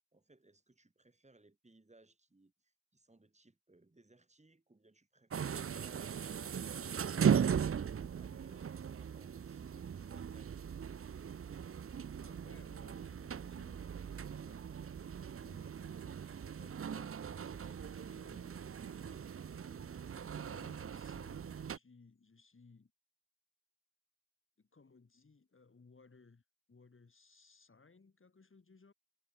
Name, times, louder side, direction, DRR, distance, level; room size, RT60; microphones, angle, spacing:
voice 1, 0.1-6.3 6.8-10.6, right 2 dB, 20° right, 3.7 m, -65 dB
sound 1, 5.3-21.8, right 7 dB, 40° right, 0.5 m, -38 dB
voice 2, 12.2-13.8 14.2-22.9 24.6-26.4 26.7-28.9, left 4 dB, 35° left, 2.7 m, -63 dB
wide cardioid pair, 145°, 36 cm